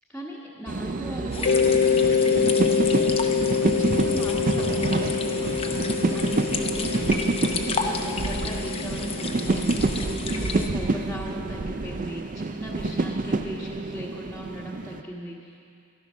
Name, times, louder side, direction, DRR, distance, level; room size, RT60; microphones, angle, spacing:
voice 1, 0.1-3.1 3.5-5.7 6.1-15.6, equal, 5° left, -7 dB, 1.4 m, -38 dB
sound 1, 0.7-15.0, right 3 dB, 35° right, 0.5 m, -28 dB
sound 2, 1.3-10.7, left 4 dB, 25° left, 0.8 m, -33 dB
Mallet percussion, 1.5-10.1, left 7 dB, 50° left, 0.4 m, -26 dB
14.0 x 12.0 x 6.3 m, 2.4 s
head